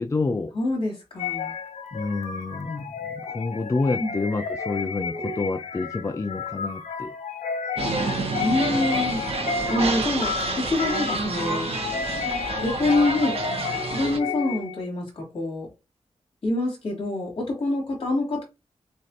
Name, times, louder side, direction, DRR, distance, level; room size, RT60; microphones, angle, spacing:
voice 1, 0.0-0.5 1.9-7.1 8.9-9.1, left 3 dB, 25° left, 0.4 m, -28 dB
voice 2, 0.5-1.5 4.0-4.1 8.4-9.2 9.7-11.7 12.6-13.4 13.9-15.7 16.4-18.4, left 2 dB, 55° left, 2.7 m, -26 dB
sound 1, 1.2-14.8, left 6 dB, 90° left, 0.8 m, -31 dB
sound 2, 7.8-14.2, right 3 dB, 60° right, 0.9 m, -29 dB
6.2 x 2.4 x 2.8 m
wide cardioid pair, 130°, 12 cm